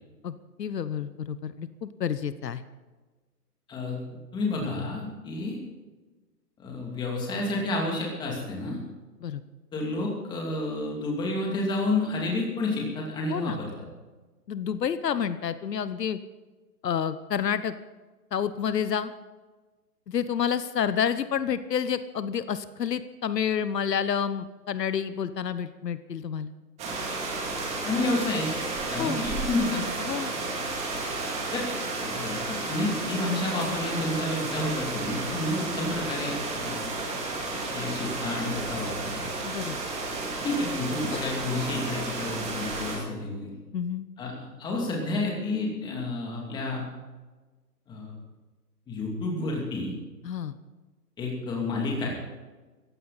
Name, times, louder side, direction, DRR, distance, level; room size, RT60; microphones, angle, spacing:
voice 1, 0.2-2.6 9.2-9.4 13.3-13.6 14.5-16.2 16.8-17.7 18.3-19.1 20.1-26.5 29.0-29.3 30.1-30.3 39.4-39.8 41.1-41.2 43.7-44.0 50.2-50.5, left 8 dB, 75° left, 13 dB, 1.1 m, -29 dB
voice 2, 3.7-4.0 4.3-5.6 6.6-8.8 9.7-13.7 27.8-28.6 28.9-29.8 31.5-31.7 32.0-36.9 37.7-39.3 40.4-43.5 44.2-46.9 47.9-48.1 48.9-49.9 51.2-52.1, left 2 dB, 10° left, -1 dB, 2.5 m, -30 dB
sound 1, 26.8-43.0, right 3 dB, 15° right, 2.4 m, -32 dB
18.5 x 15.5 x 4.1 m, 1.3 s
hypercardioid pair, 160°, 49 cm